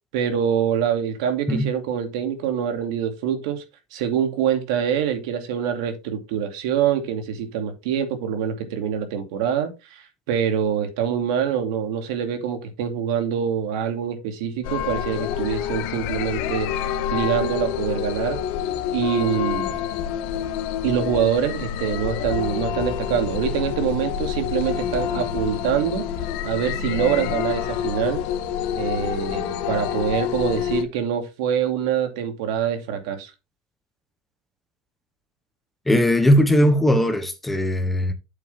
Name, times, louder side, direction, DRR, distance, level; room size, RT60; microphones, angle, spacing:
voice 1, 0.1-3.6 3.9-18.4 18.9-19.8 20.8-26.0 26.4-28.2 28.8-33.3, right 8 dB, 70° right, 2.4 m, -25 dB
sound 1, 14.6-30.8, left 9 dB, 55° left, 1.3 m, -27 dB
voice 2, 35.9-38.1, equal, 5° left, 0.8 m, -19 dB
8.3 x 7.6 x 3.4 m
cardioid pair, 170°, 3 cm